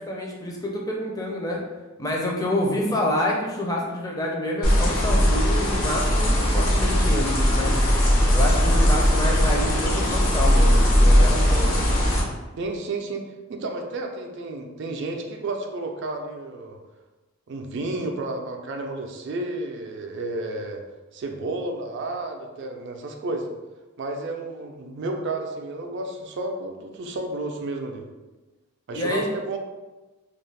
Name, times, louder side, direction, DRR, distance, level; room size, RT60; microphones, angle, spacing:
voice 1, 0.0-1.6 2.0-7.8 8.3-11.9 28.9-29.2, left 1 dB, 15° left, -2 dB, 0.4 m, -28 dB
sound 1, 4.6-12.2, equal, 75° left, 0.7 m, -19 dB
voice 2, 12.6-16.8 17.5-20.8 21.1-23.5 24.0-28.1 28.9-29.6, right 2 dB, 55° right, 3 dB, 0.4 m, -31 dB
2.4 x 2.4 x 3.2 m, 1.1 s
head